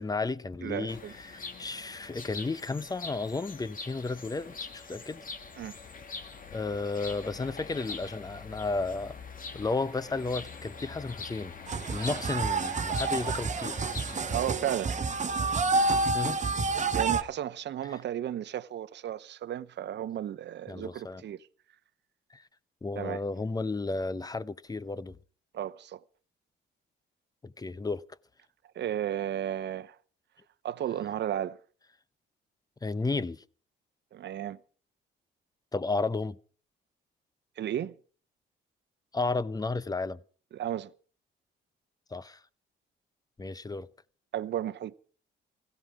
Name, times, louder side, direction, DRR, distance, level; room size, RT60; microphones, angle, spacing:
voice 1, 0.0-5.3 6.5-9.2 9.5-11.5 11.9-13.8 16.1-16.4 17.9-18.0 20.7-21.2 22.3-22.4 22.8-25.2 27.4-28.0 32.8-33.4 35.7-36.4 39.1-40.2 42.1-42.4 43.4-43.9, left 3 dB, 20° left, 0.7 m, -33 dB
voice 2, 0.6-1.1 5.6-5.8 14.3-15.0 16.9-21.5 23.0-23.2 25.5-26.0 28.8-30.0 30.6-31.6 34.1-34.6 37.6-37.9 40.5-40.9 44.3-44.9, right 11 dB, 60° right, 0.8 m, -34 dB
sound 1, 0.9-14.6, left 4 dB, 45° left, 2.0 m, -43 dB
sound 2, 11.7-17.2, right 3 dB, 35° right, 1.2 m, -29 dB
16.5 x 15.5 x 4.8 m
cardioid pair, 90°, 20 cm